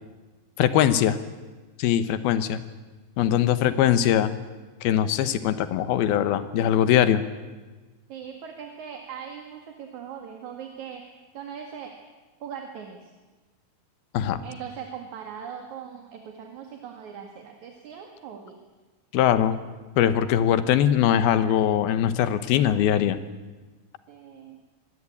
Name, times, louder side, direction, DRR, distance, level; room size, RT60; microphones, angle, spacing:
voice 1, 0.6-1.2 1.8-2.6 3.2-4.3 4.8-7.2 14.1-14.4 19.1-19.6 20.0-23.2, left 10 dB, 75° left, 12 dB, 2.9 m, -21 dB
voice 2, 8.1-11.0 11.3-11.9 12.4-13.1 14.4-18.6 24.1-24.6, right 7 dB, 55° right, 3 dB, 2.8 m, -40 dB
25.0 x 19.5 x 8.6 m, 1.3 s
omnidirectional pair, 4.7 m